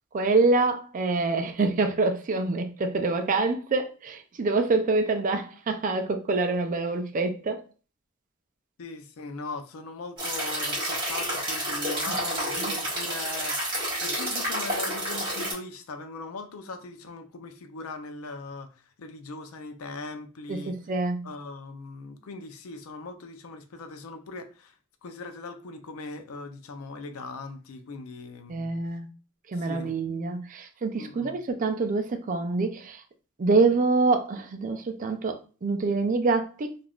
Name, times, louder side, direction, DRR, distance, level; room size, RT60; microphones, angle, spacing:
voice 1, 0.1-7.6 12.1-12.2 12.6-12.7 20.5-21.3 28.5-29.1 29.5-33.0 33.4-36.8, right 3 dB, 40° right, 0.4 m, -26 dB
voice 2, 8.8-13.6 14.0-18.7 19.0-20.7 21.2-24.7 25.0-28.7 29.6-29.9 30.9-31.4, left 3 dB, 85° left, 0.5 m, -39 dB
sound 1, 10.2-15.5, right 1 dB, 20° right, 1.4 m, -30 dB
3.4 x 2.4 x 2.3 m
head